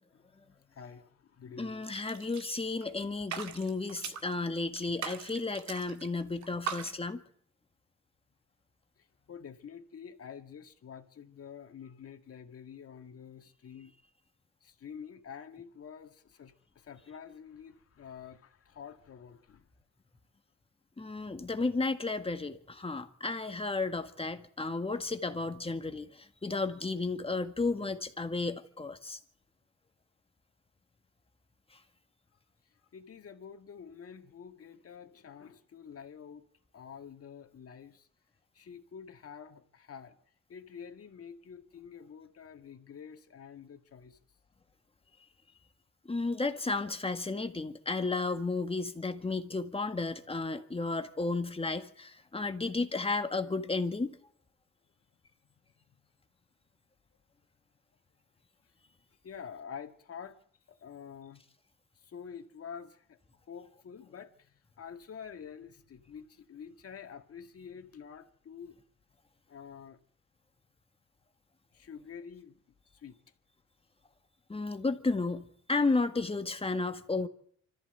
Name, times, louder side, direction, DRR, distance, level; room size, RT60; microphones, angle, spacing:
voice 1, 0.1-1.9 9.0-13.9 14.6-19.7 32.9-36.4 36.7-38.1 38.5-40.2 40.5-44.2 46.8-47.7 55.2-55.3 59.2-60.4 60.7-61.4 62.0-63.2 63.5-68.8 69.5-70.0 71.7-72.6 72.9-73.2, left 7 dB, 50° left, 2.0 m, -48 dB
voice 2, 1.6-7.2 21.0-29.2 46.1-54.2 74.5-77.3, left 3 dB, 20° left, 1.7 m, -33 dB
sound 1, 1.9-2.9 3.2-4.3 4.8-6.1 6.4-6.9, right 7 dB, 65° right, 2.1 m, -40 dB
25.0 x 14.5 x 8.1 m
cardioid pair, 90°, 30 cm